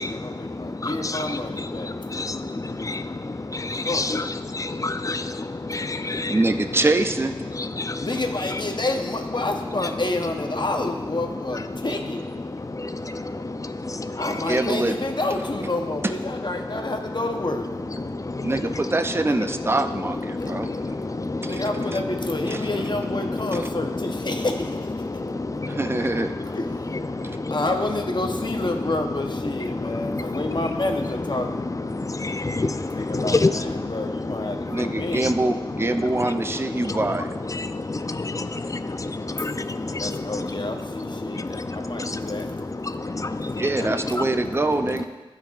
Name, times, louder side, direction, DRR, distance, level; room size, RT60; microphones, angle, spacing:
voice 1, 0.0-1.9 3.8-4.1 8.0-12.2 14.2-17.7 21.4-24.8 26.5-27.1 27.5-31.6 32.7-35.3 40.0-42.5 43.8-44.1, left 2 dB, 55° left, 4 dB, 0.8 m, -29 dB
voice 2, 3.9-4.2 4.8-5.2 5.7-6.3 32.2-32.7 33.2-33.5 35.2-35.3 37.5-37.6 38.4-38.5 39.4-39.5 40.0-40.1, left 3 dB, 35° left, 10 dB, 0.4 m, -24 dB
voice 3, 6.3-7.3 14.3-15.0 18.4-20.7 21.4-21.6 22.4-22.6 25.7-26.3 27.2-27.4 34.7-37.3 43.6-45.1, right 2 dB, 25° right, 8 dB, 0.4 m, -24 dB
13.0 x 5.4 x 2.4 m, 1.3 s
wide cardioid pair, 45°, 9 cm